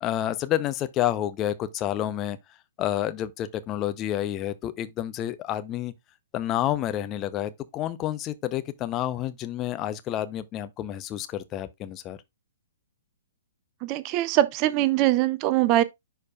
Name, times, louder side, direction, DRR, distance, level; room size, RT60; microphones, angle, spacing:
voice 1, 0.0-2.4 2.8-5.9 6.3-12.2, left 12 dB, 25° left, 0.7 m, -29 dB
voice 2, 13.8-15.8, right 14 dB, 30° right, 0.6 m, -22 dB
11.0 x 4.7 x 2.4 m
figure-of-eight pair, 115°, 0 cm